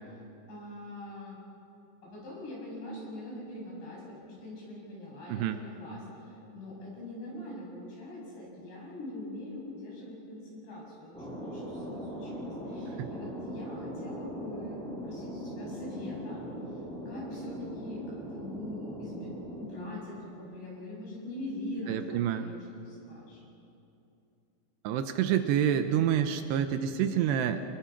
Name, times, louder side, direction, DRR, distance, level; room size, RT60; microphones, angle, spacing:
voice 1, 0.5-1.4 2.0-16.4 17.1-23.4, left 1 dB, 80° left, -4 dB, 9.5 m, -43 dB
Thunder, 11.1-20.5, equal, ahead, 4.1 m, -40 dB
voice 2, 21.9-22.5 24.8-27.6, right 9 dB, 80° right, 8 dB, 2.9 m, -28 dB
29.5 x 21.0 x 6.0 m, 2.7 s
omnidirectional pair, 5.0 m